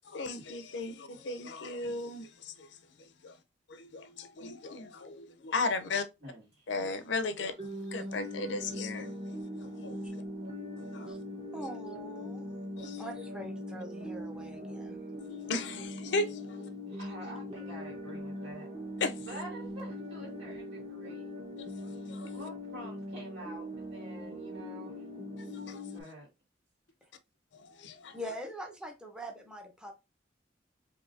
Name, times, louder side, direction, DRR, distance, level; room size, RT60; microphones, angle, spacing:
voice 1, 0.0-3.4 3.7-6.0 6.7-9.1 9.5-10.2 10.8-11.1 12.8-13.0 15.3-16.7 19.0-19.3 21.6-22.4 25.5-25.9 27.5-28.2, left 3 dB, 70° left, 0.5 m, -36 dB
voice 2, 5.9-6.7 16.9-18.7 19.2-21.3 22.3-25.1 25.9-26.3, right 1 dB, 75° right, 2.3 m, -48 dB
sound 1, 7.6-26.0, left 1 dB, 30° right, 1.1 m, -41 dB
voice 3, 11.5-12.5 13.0-15.0 28.1-29.9, equal, 5° right, 0.6 m, -43 dB
4.8 x 2.7 x 2.6 m
head